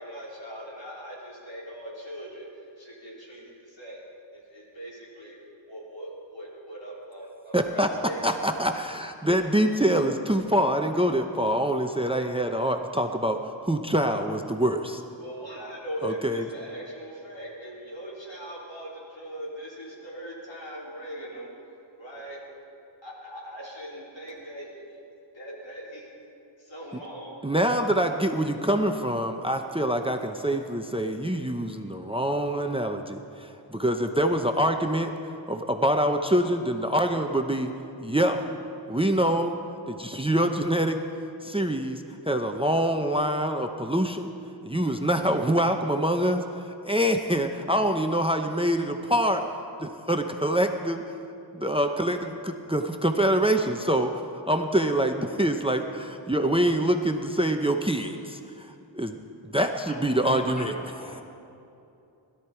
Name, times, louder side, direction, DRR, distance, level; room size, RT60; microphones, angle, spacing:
voice 1, 0.0-4.0 4.3-5.4 5.7-8.3 15.2-21.5 22.0-22.4 23.0-25.0 25.3-26.1 26.6-27.4, equal, 75° left, -5 dB, 4.3 m, -40 dB
voice 2, 7.5-7.9 8.2-15.0 16.0-16.4 27.4-35.1 35.5-37.7 38.0-38.4 38.9-39.6 39.9-41.0 41.4-44.3 44.6-49.4 49.8-51.0 51.5-54.1 54.5-58.7 58.9-59.2 59.4-60.7, right 1 dB, 10° right, 5 dB, 0.7 m, -25 dB
voice 3, 59.9-61.2, left 1 dB, 15° left, 1 dB, 1.6 m, -41 dB
21.0 x 12.5 x 4.5 m, 2.7 s
wide cardioid pair, 65°, 45 cm